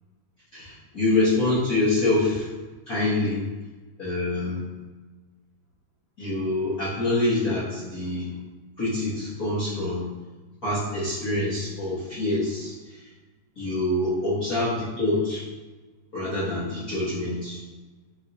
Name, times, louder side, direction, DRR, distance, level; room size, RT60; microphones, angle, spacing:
voice 1, 0.5-2.5 2.9-3.4 4.0-4.6 6.2-8.3 8.8-10.1 10.6-13.1 13.6-15.4 16.1-17.6, left 2 dB, 85° left, -11 dB, 0.8 m, -26 dB
4.8 x 3.8 x 2.6 m, 1.3 s
omnidirectional pair, 3.5 m